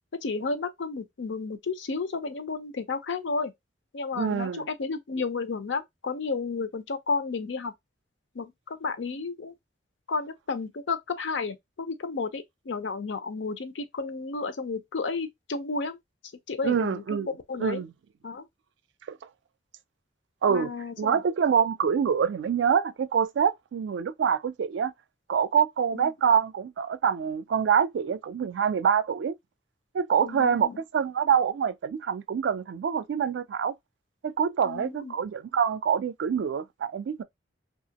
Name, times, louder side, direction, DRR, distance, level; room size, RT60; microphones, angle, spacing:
voice 1, 0.2-3.5 3.9-7.7 8.3-9.5 10.1-16.0 16.5-17.8 18.2-18.5 20.5-21.2 25.9-26.1 30.2-30.7 34.6-35.1, left 4 dB, 85° left, 0.5 m, -32 dB
voice 2, 4.2-4.7 16.6-17.3 17.6-17.9 19.1-19.2 20.4-20.7 21.0-24.9 25.3-29.3 29.9-33.7 34.2-37.2, right 7 dB, 75° right, 0.3 m, -25 dB
2.8 x 2.4 x 2.8 m
head